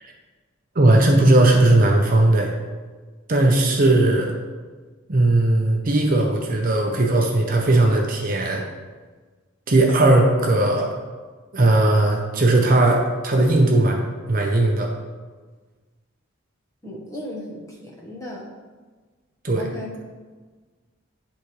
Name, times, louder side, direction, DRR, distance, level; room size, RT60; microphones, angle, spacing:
voice 1, 0.8-2.5 3.3-4.3 5.1-8.6 9.7-10.9 11.5-14.9 19.4-19.7, right 2 dB, 40° right, 1 dB, 0.7 m, -18 dB
voice 2, 16.8-18.4 19.5-19.9, left 1 dB, 15° left, -4 dB, 1.1 m, -35 dB
10.5 x 3.6 x 3.1 m, 1.4 s
head